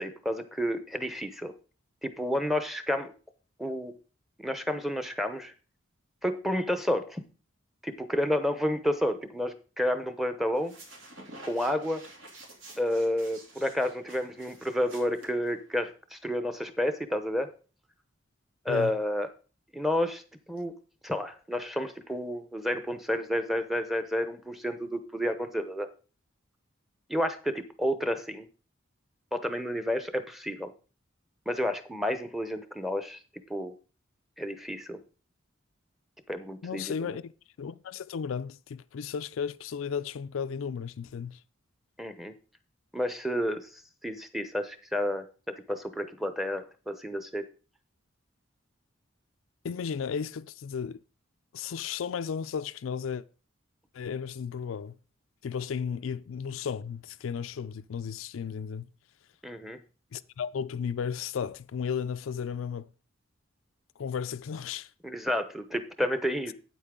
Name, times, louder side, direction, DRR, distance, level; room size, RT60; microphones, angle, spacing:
voice 1, 0.0-1.5 2.0-3.1 3.6-4.0 4.4-5.5 6.2-7.2 7.8-10.7 11.4-12.0 12.8-17.5 18.6-19.3 19.7-20.2 20.5-20.8 21.0-25.9 27.1-28.5 29.3-30.7 31.5-33.2 33.5-33.7 34.4-35.0 36.3-37.2 42.0-42.3 42.9-43.7 44.0-45.3 45.7-47.4 59.4-59.8 65.0-66.5, equal, ahead, 0.7 m, -30 dB
sound 1, 10.5-15.9, right 2 dB, 80° right, 2.9 m, -50 dB
voice 2, 36.6-37.3 37.6-41.4 49.6-51.0 51.5-53.2 53.9-54.9 55.4-58.9 60.1-62.9 64.0-64.9, left 7 dB, 85° left, 0.4 m, -34 dB
8.8 x 8.1 x 3.7 m
head